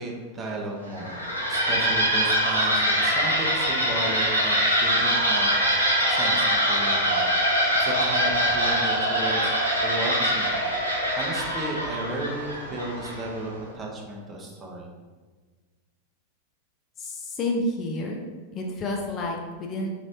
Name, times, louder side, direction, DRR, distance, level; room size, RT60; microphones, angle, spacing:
voice 1, 0.0-5.5 5.9-14.9, right 2 dB, 20° right, -1 dB, 0.8 m, -34 dB
sound 1, 0.9-13.4, equal, 90° right, 0.8 m, -23 dB
voice 2, 17.0-18.2 18.5-19.9, left 1 dB, 30° left, 1 dB, 0.5 m, -29 dB
4.8 x 3.0 x 2.8 m, 1.4 s
figure-of-eight pair, 90°, 0 cm